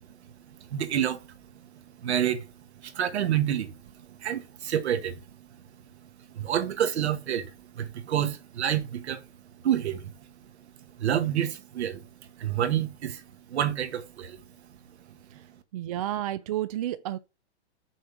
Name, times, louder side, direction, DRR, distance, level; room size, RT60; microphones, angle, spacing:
voice 1, 0.7-1.2 2.0-2.5 2.8-3.8 4.1-5.2 6.3-9.2 9.6-10.1 11.0-12.0 12.4-14.4, right 10 dB, 70° right, 1.5 m, -28 dB
voice 2, 15.3-17.2, right 13 dB, 35° right, 0.4 m, -32 dB
6.5 x 6.3 x 4.6 m
hypercardioid pair, 155°, 34 cm